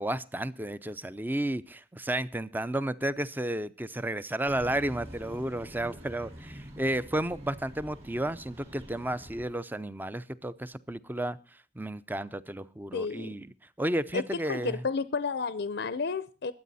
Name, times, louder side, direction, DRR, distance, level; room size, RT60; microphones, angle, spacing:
voice 1, 0.0-11.4 11.8-14.8, right 1 dB, 10° right, 15 dB, 0.6 m, -32 dB
sound 1, 4.5-9.4, equal, 35° right, 4.9 m, -46 dB
voice 2, 12.9-13.4 14.1-16.5, left 4 dB, 65° left, 14 dB, 0.6 m, -31 dB
21.5 x 8.4 x 4.1 m, 0.33 s
head